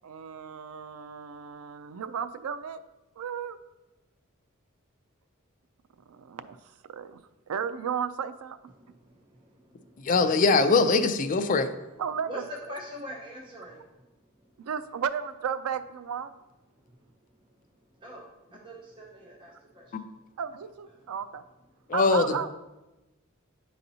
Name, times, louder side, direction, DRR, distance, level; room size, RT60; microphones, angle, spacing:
voice 1, 0.0-2.8 3.2-3.6 6.1-7.2 7.5-8.6 12.0-12.3 14.6-16.3 20.4-21.4 21.9-22.5, right 7 dB, 90° right, 0.4 m, -34 dB
voice 2, 8.7-10.7 12.3-14.7 16.8-17.6 18.0-20.1 22.0-22.3, equal, 25° right, 0.6 m, -44 dB
voice 3, 10.0-11.7 19.9-20.0 21.9-22.5, left 3 dB, 40° left, 0.4 m, -22 dB
9.7 x 4.0 x 2.8 m
head